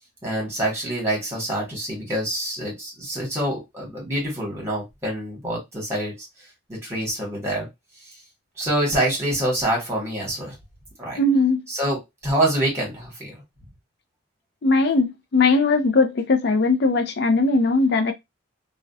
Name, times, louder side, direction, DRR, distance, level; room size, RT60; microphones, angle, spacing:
voice 1, 0.2-6.2 6.7-7.7 8.6-10.6 11.0-11.2 11.7-13.3, right 1 dB, 15° right, 1.1 m, -26 dB
voice 2, 11.2-11.6 14.6-18.1, left 3 dB, 55° left, 0.4 m, -19 dB
2.3 x 2.1 x 2.6 m
head